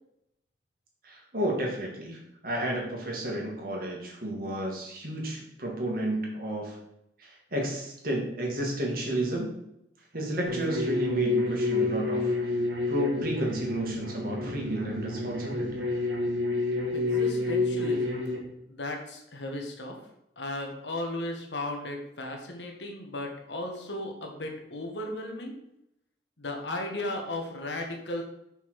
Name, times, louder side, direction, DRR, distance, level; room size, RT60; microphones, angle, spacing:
voice 1, 1.0-6.8 7.2-9.5 10.1-12.3 12.9-15.8, right 1 dB, 55° right, -1 dB, 2.2 m, -32 dB
sound 1, 10.5-18.4, left 2 dB, 90° right, 2.1 m, -29 dB
voice 2, 16.9-18.2 18.7-20.0 20.4-25.6 26.4-28.2, left 1 dB, 85° left, 2 dB, 1.6 m, -35 dB
6.6 x 5.6 x 4.8 m, 0.81 s
head